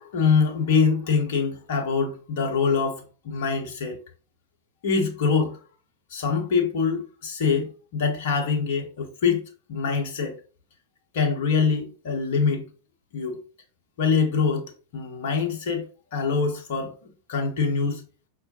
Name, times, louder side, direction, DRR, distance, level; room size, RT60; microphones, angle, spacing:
voice 1, 0.0-4.0 4.8-5.6 6.1-10.4 11.1-12.6 13.1-13.4 14.0-14.7 14.9-15.8 16.1-16.9 17.3-18.0, left 5 dB, 55° left, 1.0 m, -24 dB
5.6 x 2.1 x 2.8 m
figure-of-eight pair, 90°, 0 cm